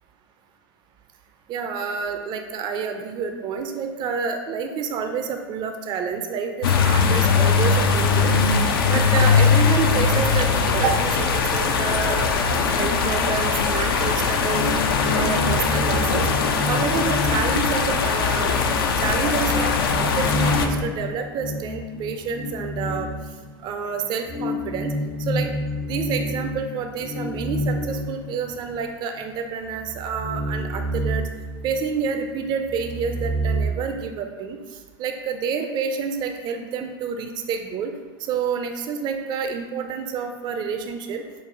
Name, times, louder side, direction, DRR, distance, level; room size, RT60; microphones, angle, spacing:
voice 1, 1.5-8.3 8.9-12.3 12.7-14.7 15.1-16.3 16.7-18.5 19.0-23.1 23.6-24.9 25.2-31.2 31.6-34.6 35.0-37.9 38.2-41.2, right 6 dB, 40° right, 6 dB, 0.4 m, -28 dB
sound 1, 6.6-20.7, left 5 dB, 75° left, 0.4 m, -20 dB
sound 2, 14.3-18.4 18.8-18.9 19.3-23.7 24.2-28.9 29.2-29.3 29.8-32.2 32.5-33.7, left 1 dB, 45° left, 0.9 m, -29 dB
6.5 x 2.3 x 2.5 m, 1.4 s
hypercardioid pair, 85°, 12 cm